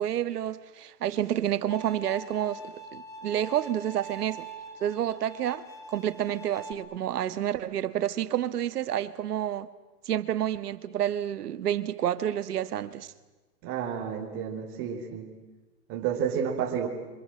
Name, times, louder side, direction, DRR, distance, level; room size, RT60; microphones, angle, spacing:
voice 1, 0.0-4.5 4.8-5.6 5.9-9.7 10.1-13.1, right 11 dB, 75° right, 1.7 m, -29 dB
Bowed string instrument, 1.7-6.7, right 2 dB, 5° left, 2.0 m, -43 dB
voice 2, 13.6-15.3 15.9-16.9, right 8 dB, 30° right, 4.2 m, -31 dB
27.0 x 26.5 x 7.8 m
hypercardioid pair, 155°, 47 cm